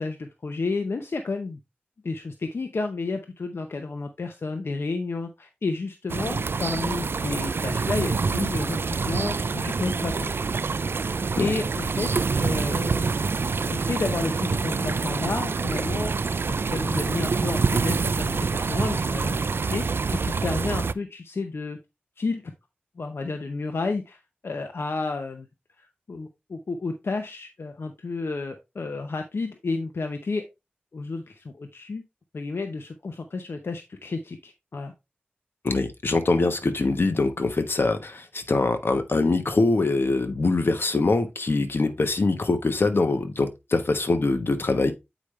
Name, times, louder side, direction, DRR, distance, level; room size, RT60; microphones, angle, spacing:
voice 1, 0.0-1.6 2.0-10.3 11.3-21.8 22.2-22.4 23.0-25.5 25.8-30.5 30.9-32.0 32.3-34.9, left 3 dB, 85° left, 0.8 m, -31 dB
sound 1, 6.1-20.9, right 4 dB, 75° right, 0.4 m, -26 dB
voice 2, 35.6-44.9, left 3 dB, 70° left, 1.1 m, -23 dB
8.2 x 5.0 x 3.2 m
wide cardioid pair, 55°, 4 cm